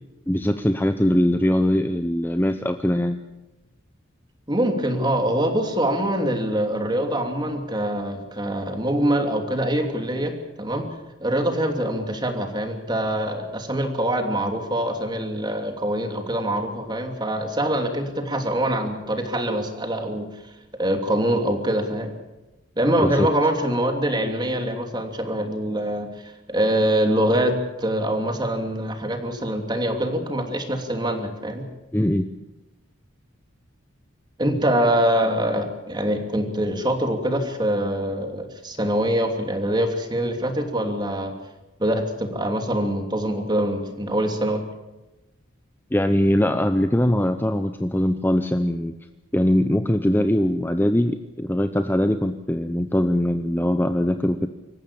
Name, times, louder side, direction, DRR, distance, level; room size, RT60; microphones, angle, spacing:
voice 1, 0.3-3.2 23.0-23.3 31.9-32.3 45.9-48.9 49.3-54.5, left 1 dB, 10° left, 8 dB, 0.7 m, -21 dB
voice 2, 4.5-10.9 11.2-20.3 20.8-22.1 22.8-31.6 34.4-41.3 41.8-44.6, right 1 dB, 20° right, 4 dB, 3.0 m, -24 dB
25.5 x 15.0 x 8.8 m, 1.1 s
head